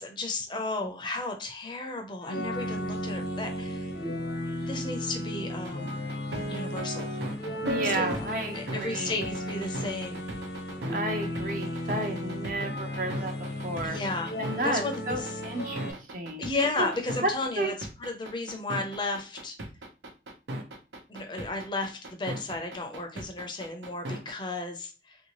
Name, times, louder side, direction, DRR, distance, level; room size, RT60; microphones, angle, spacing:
voice 1, 0.0-3.9 4.6-6.0 6.5-7.2 7.8-8.3 8.5-10.2 13.8-14.4 14.6-15.4 16.4-19.6 21.1-25.2, left 2 dB, 25° left, 5 dB, 0.5 m, -34 dB
sound 1, 2.2-15.9, left 1 dB, 70° left, 0.7 m, -35 dB
sound 2, 5.6-24.3, right 1 dB, 85° right, 0.8 m, -36 dB
voice 2, 7.6-9.1 10.9-13.3 13.6-14.0 14.4-16.5 16.8-16.9 17.2-17.3 17.6-17.7, right 1 dB, 50° right, 4 dB, 0.7 m, -32 dB
3.2 x 2.8 x 2.9 m, 0.33 s
head